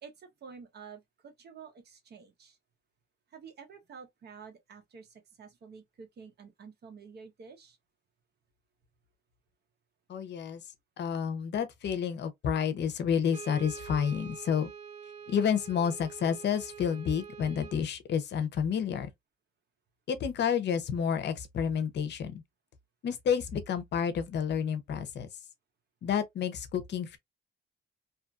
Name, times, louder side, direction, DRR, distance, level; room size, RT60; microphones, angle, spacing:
voice 1, 0.0-2.6 3.3-7.8, right 6 dB, 55° right, 1.0 m, -50 dB
voice 2, 10.1-10.6 11.0-14.7 15.3-19.1 20.1-22.4 23.0-25.3 26.0-27.2, left 7 dB, 60° left, 0.7 m, -30 dB
Brass instrument, 13.3-17.9, right 7 dB, 35° right, 0.6 m, -46 dB
2.7 x 2.5 x 2.3 m
cardioid pair, 90°, 20 cm